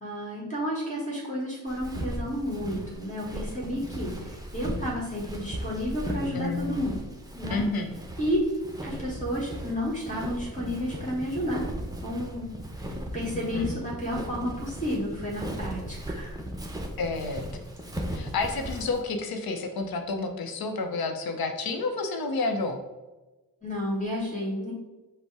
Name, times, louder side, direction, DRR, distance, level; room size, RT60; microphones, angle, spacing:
voice 1, 0.0-7.0 7.3-7.6 8.2-8.4 8.8-11.7 12.0-16.4 23.6-24.7, equal, 20° left, -5 dB, 1.4 m, -31 dB
Walk footsteps, 1.7-19.0, right 1 dB, 10° right, 0.7 m, -37 dB
voice 2, 6.3-6.9 7.5-7.9 13.3-13.8 17.0-17.5 18.1-22.8, left 3 dB, 85° left, 5 dB, 0.7 m, -30 dB
5.2 x 2.1 x 4.7 m, 1.1 s
cardioid pair, 65°, 35 cm